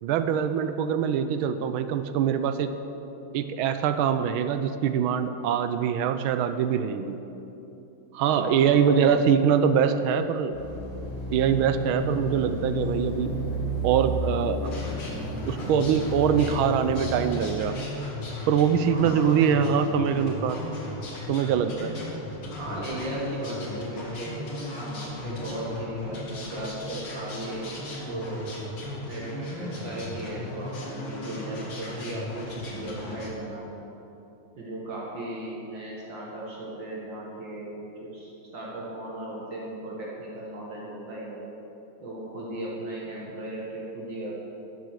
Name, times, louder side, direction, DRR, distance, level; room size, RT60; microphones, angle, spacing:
voice 1, 0.0-2.7 3.3-7.2 8.1-10.5 11.3-13.3 13.8-14.7 15.5-17.8 18.5-20.6 21.3-21.9, right 7 dB, 80° right, 10 dB, 1.4 m, -23 dB
voice 2, 8.2-9.1 18.9-19.4 22.6-27.7 28.0-28.5 29.0-33.9 34.6-41.4 42.0-44.3, right 1 dB, 60° right, -4 dB, 2.2 m, -36 dB
sound 1, 10.5-17.6, equal, 25° right, 2.9 m, -32 dB
sound 2, 14.6-33.3, left 2 dB, 80° left, 2.8 m, -36 dB
12.0 x 7.8 x 6.6 m, 3.0 s
omnidirectional pair, 2.4 m